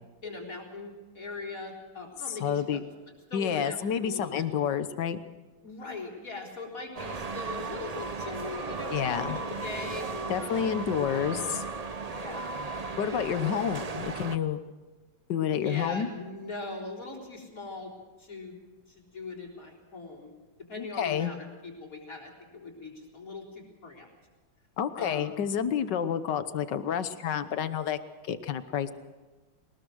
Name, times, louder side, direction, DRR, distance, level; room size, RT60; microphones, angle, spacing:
voice 1, 0.2-2.8 3.3-4.4 5.6-10.5 11.1-11.5 12.0-12.5 13.0-13.4 15.6-17.9 18.2-18.6 18.9-20.3 20.7-24.1 25.0-25.4, left 3 dB, 45° left, -1 dB, 4.3 m, -40 dB
voice 2, 2.3-2.8 3.3-5.2 8.9-9.4 10.3-11.6 13.0-14.6 15.3-16.1 20.8-21.3 24.8-28.0 28.3-28.9, left 8 dB, 65° left, 12 dB, 1.6 m, -29 dB
sound 1, 6.9-14.4, right 4 dB, 60° right, 0.4 m, -36 dB
22.0 x 19.5 x 6.3 m, 1.2 s
omnidirectional pair, 2.1 m